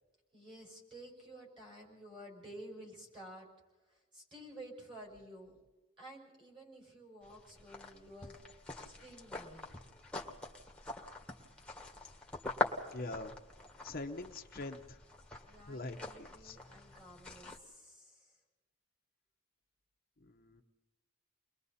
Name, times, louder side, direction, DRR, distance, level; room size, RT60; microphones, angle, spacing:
voice 1, 0.3-3.5 3.8-5.5 6.0-8.4 8.8-9.8 15.5-18.4, right 1 dB, 25° right, -1 dB, 5.9 m, -52 dB
sound 1, 7.2-17.6, left 2 dB, 5° left, 1.7 m, -44 dB
voice 2, 12.9-13.3 13.8-15.0 15.7-16.6 20.2-20.6, left 2 dB, 45° left, 4 dB, 0.9 m, -43 dB
30.0 x 21.5 x 4.2 m, 1.2 s
head